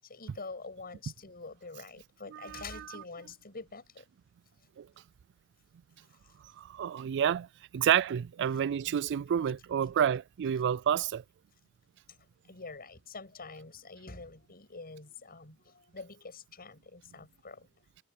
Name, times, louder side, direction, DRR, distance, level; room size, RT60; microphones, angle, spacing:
voice 1, 0.0-4.0 9.3-9.4 12.5-17.7, left 3 dB, 45° left, 7.8 m, -46 dB
voice 2, 2.3-3.0 4.8-4.9 6.6-7.5 7.7-11.2, right 9 dB, 55° right, 0.3 m, -29 dB
head